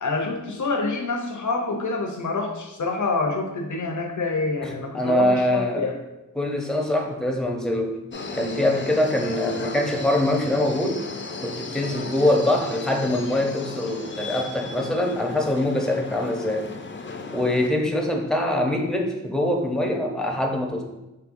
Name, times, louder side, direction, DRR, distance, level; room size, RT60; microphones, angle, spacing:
voice 1, 0.0-6.0, left 3 dB, 80° left, 3 dB, 0.6 m, -27 dB
voice 2, 4.6-5.9 6.4-8.1 8.3-11.0 11.4-16.7 17.3-20.8, left 1 dB, ahead, 2 dB, 0.6 m, -24 dB
sound 1, 8.1-17.7, left 4 dB, 40° left, 0.4 m, -35 dB
4.8 x 3.2 x 2.5 m, 0.98 s
wide cardioid pair, 45°, 30 cm